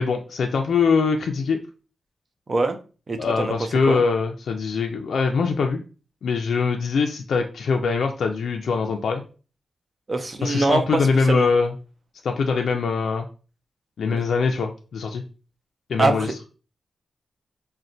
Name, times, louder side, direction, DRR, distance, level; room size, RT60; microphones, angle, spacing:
voice 1, 0.0-1.6 3.2-5.8 6.2-9.2 10.4-11.7 12.2-13.3 14.0-15.2 15.9-16.3, left 5 dB, 80° left, 0.3 m, -22 dB
voice 2, 3.1-3.5 3.9-4.0 10.1-11.5 16.0-16.3, right 2 dB, 40° right, 0.5 m, -23 dB
4.1 x 2.1 x 2.5 m
wide cardioid pair, 95°, 0 cm